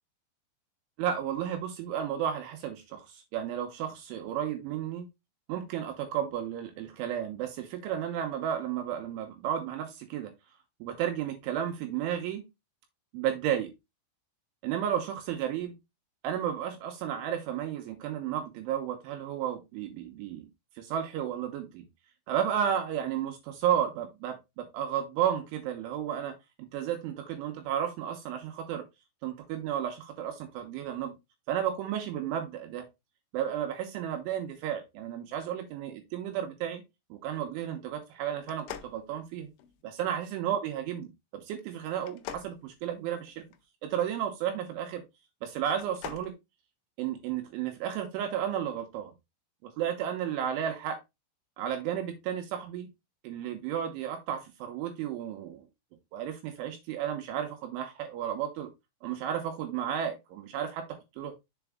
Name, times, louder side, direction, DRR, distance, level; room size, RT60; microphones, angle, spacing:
voice 1, 1.0-5.1 5.5-10.3 10.8-12.4 13.1-13.7 14.6-15.8 16.2-20.5 20.8-21.8 22.3-26.3 26.7-28.8 29.2-31.1 31.5-32.8 33.3-36.8 37.1-39.5 39.8-43.4 43.8-45.0 45.4-46.3 47.0-49.1 49.6-51.0 51.6-52.9 53.2-55.6 56.1-58.7 59.0-61.3, right 9 dB, 75° right, 3.1 m, -33 dB
sound 1, 38.4-39.8 42.0-43.6 45.6-46.3, left 10 dB, 80° left, 2.9 m, -43 dB
7.1 x 4.5 x 3.4 m
omnidirectional pair, 6.0 m